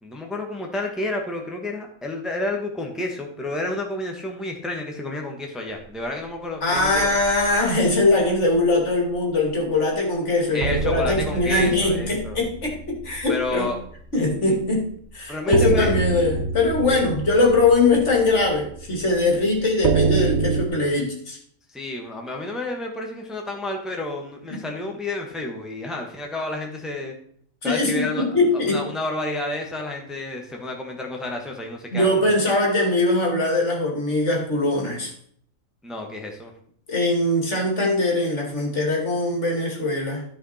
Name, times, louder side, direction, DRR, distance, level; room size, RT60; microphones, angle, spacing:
voice 1, 0.0-7.1 10.5-12.4 13.3-13.8 15.3-15.9 16.9-17.0 21.7-27.1 27.6-28.2 28.5-32.4 35.8-36.5, left 2 dB, ahead, 1 dB, 1.4 m, -30 dB
voice 2, 6.6-13.7 14.1-14.8 15.1-21.4 24.5-24.6 27.6-28.8 31.9-35.1 36.9-40.2, left 2 dB, 60° left, 0 dB, 2.7 m, -21 dB
sound 1, 6.8-8.7 9.1-9.3 9.7-9.8 10.6-14.5 14.8-14.9 15.5-20.7, right 4 dB, 60° right, 1.0 m, -27 dB
14.0 x 5.2 x 4.3 m, 0.62 s
omnidirectional pair, 1.4 m